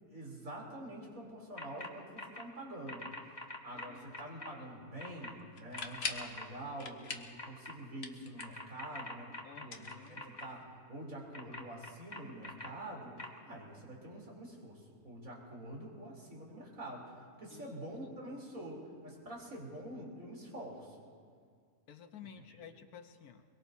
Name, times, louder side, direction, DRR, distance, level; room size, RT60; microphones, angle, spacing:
voice 1, 0.1-3.1 3.6-13.2 13.5-21.1, right 1 dB, 60° right, -3 dB, 3.8 m, -46 dB
sound 1, 1.6-1.9 2.2-2.4 2.9-4.5 5.0-5.3 5.7-6.4 7.4-7.7 8.4-10.4 11.3-12.7 13.2-13.3, left 2 dB, 20° left, 1.1 m, -44 dB
voice 2, 3.7-4.1 9.4-10.4 17.5-17.9 21.9-23.4, left 8 dB, 75° left, 6 dB, 1.4 m, -53 dB
sound 2, 5.5-6.3 6.8-7.4 7.7-8.7 9.6-10.5, left 4 dB, 45° left, 1.2 m, -42 dB
23.5 x 22.5 x 2.7 m, 2.1 s
omnidirectional pair, 1.6 m